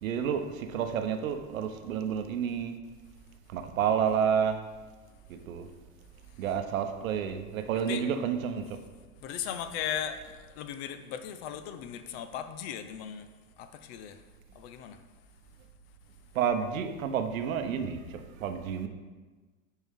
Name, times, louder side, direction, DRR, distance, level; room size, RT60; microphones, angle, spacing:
voice 1, 0.0-2.8 3.5-4.6 5.3-5.7 6.4-8.8 16.3-18.9, right 8 dB, 85° right, 7 dB, 0.9 m, -30 dB
voice 2, 7.7-8.1 9.2-13.3 13.6-14.2 14.6-15.0, left 9 dB, 50° left, 10 dB, 0.7 m, -37 dB
10.0 x 4.5 x 3.6 m, 1.3 s
supercardioid pair, 130°, 40 cm